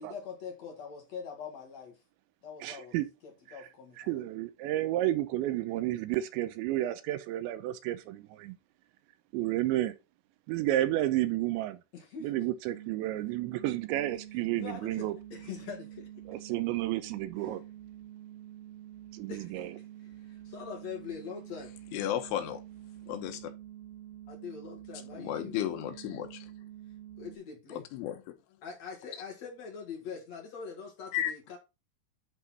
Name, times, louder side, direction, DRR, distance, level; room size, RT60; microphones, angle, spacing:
voice 1, 0.0-2.0 2.4-3.0 3.2-4.2 11.9-12.3 14.5-16.1 17.4-17.6 19.3-19.6 20.2-21.8 24.3-25.6 27.2-27.8 28.6-31.6, left 6 dB, 60° left, 1.9 m, -43 dB
voice 2, 2.6-3.1 4.0-8.6 9.3-9.9 10.5-11.8 12.2-15.1 16.3-17.6 19.1-19.7, right 14 dB, 85° right, 2.8 m, -31 dB
sound 1, 12.7-27.4, right 12 dB, 65° right, 3.5 m, -48 dB
voice 3, 21.9-22.6 23.1-23.5 25.2-26.5 27.7-28.2 31.1-31.3, left 11 dB, 85° left, 3.6 m, -33 dB
11.0 x 3.9 x 4.0 m
omnidirectional pair, 5.4 m